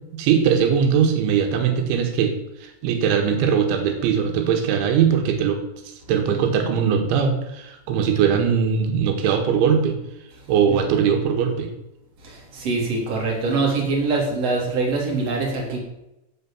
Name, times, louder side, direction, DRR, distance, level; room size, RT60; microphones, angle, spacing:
voice 1, 0.1-2.3 2.6-10.0 10.5-11.7 13.8-13.9, right 7 dB, 90° right, 4 dB, 4.0 m, -20 dB
voice 2, 12.5-15.8, right 3 dB, 35° right, -1 dB, 4.2 m, -23 dB
16.0 x 6.8 x 7.1 m, 0.90 s
omnidirectional pair, 5.2 m